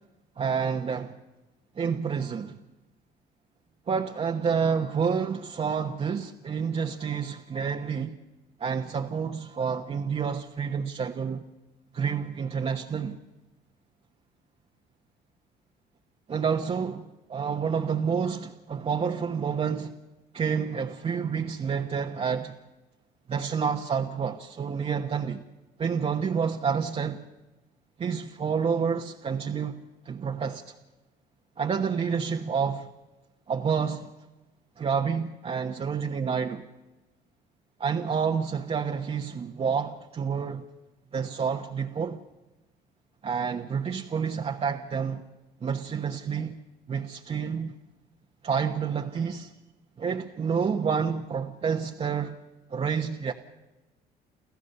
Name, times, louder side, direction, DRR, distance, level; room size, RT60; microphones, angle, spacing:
voice 1, 0.4-1.1 1.8-2.6 3.9-8.1 8.6-11.4 11.9-13.2 16.3-20.0 20.3-22.6 23.3-25.4 25.8-27.3 28.0-30.7 31.6-32.9 33.5-34.1 34.8-36.7 37.8-40.7 41.1-42.2 43.2-45.2 45.6-46.6 46.9-47.7 48.4-49.5 50.0-52.4 52.7-53.3, right 6 dB, 35° right, 1.1 m, -29 dB
29.5 x 14.0 x 6.8 m
cardioid pair, 110°, 17 cm